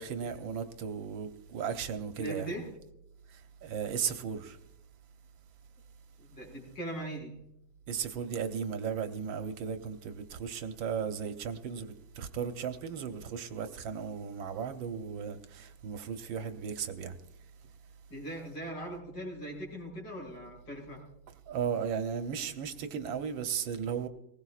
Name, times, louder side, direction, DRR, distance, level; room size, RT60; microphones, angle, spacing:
voice 1, 0.0-2.5 3.3-4.6 7.9-17.2 21.5-24.1, right 7 dB, 75° right, 1.6 m, -36 dB
voice 2, 2.2-2.6 6.2-7.3 18.1-21.0, right 1 dB, 65° left, 6.1 m, -40 dB
20.0 x 18.0 x 2.4 m
omnidirectional pair, 2.2 m